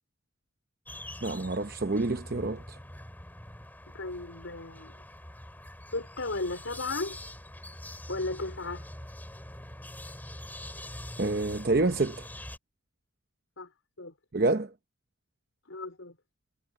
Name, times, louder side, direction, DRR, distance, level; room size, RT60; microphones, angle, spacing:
sound 1, 0.9-12.6, left 1 dB, 10° left, 4.0 m, -44 dB
voice 1, 1.2-2.8 11.2-12.3 14.3-14.7, right 2 dB, 50° right, 0.8 m, -28 dB
voice 2, 3.9-5.0 5.9-7.2 8.1-8.9 13.6-13.7 14.0-14.1 15.7-16.2, left 2 dB, 90° left, 4.5 m, -35 dB
head